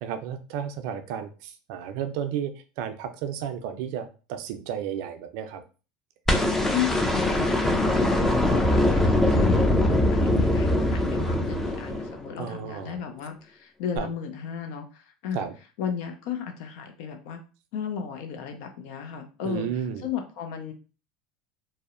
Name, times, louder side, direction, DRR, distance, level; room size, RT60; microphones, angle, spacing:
voice 1, 0.0-2.5 2.8-5.6 12.4-13.0 14.0-14.1 15.3-15.5 19.4-20.1, right 9 dB, 65° right, 8 dB, 0.4 m, -32 dB
sound 1, 6.3-12.4 14.0-14.1, left 1 dB, 10° left, 0.5 m, -22 dB
voice 2, 6.7-7.3 7.6-15.5 15.8-17.4 17.7-19.7 20.0-20.7, left 8 dB, 65° left, 6 dB, 0.5 m, -34 dB
2.6 x 2.0 x 2.4 m, 0.34 s
hypercardioid pair, 100°, 4 cm